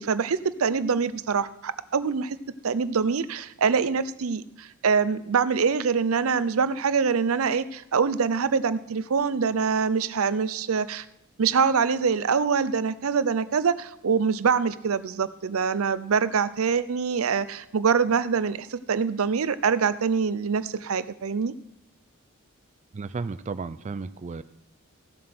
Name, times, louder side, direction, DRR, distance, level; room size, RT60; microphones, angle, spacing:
voice 1, 0.0-2.4 2.6-11.0 11.4-21.5, right 5 dB, 85° right, 15 dB, 0.6 m, -24 dB
voice 2, 22.9-24.4, right 4 dB, 35° right, 12 dB, 0.3 m, -33 dB
15.0 x 7.5 x 6.0 m, 0.81 s
head